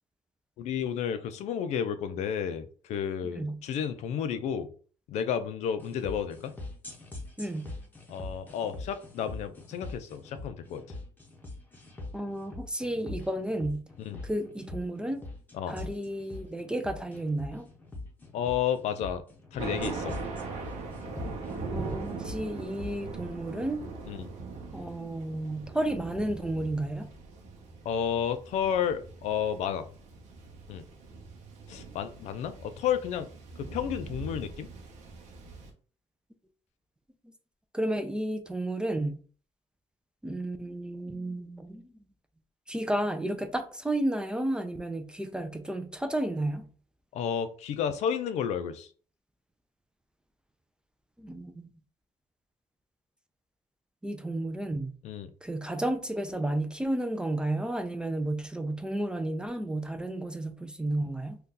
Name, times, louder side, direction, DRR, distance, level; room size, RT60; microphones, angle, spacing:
voice 1, 0.6-4.7 5.1-6.5 8.1-10.8 14.1-14.2 15.5-15.7 18.3-19.2 19.5-20.2 24.1-24.3 27.9-29.9 30.7-30.8 31.7-33.3 33.6-34.7 47.1-48.9 55.0-55.3, left 8 dB, 65° left, 0.4 m, -31 dB
voice 2, 3.2-3.6 7.4-7.7 12.1-13.8 14.2-15.2 15.7-17.7 21.0-23.8 24.7-27.1 37.7-39.2 40.2-41.9 42.7-46.7 51.2-51.7 54.0-54.9 55.4-61.4, right 1 dB, 5° right, 0.3 m, -32 dB
sound 1, 5.8-23.0, left 2 dB, 15° left, 0.7 m, -43 dB
Thunder, 19.6-35.7, right 4 dB, 70° right, 0.8 m, -41 dB
2.7 x 2.3 x 3.7 m
cardioid pair, 125°, 12 cm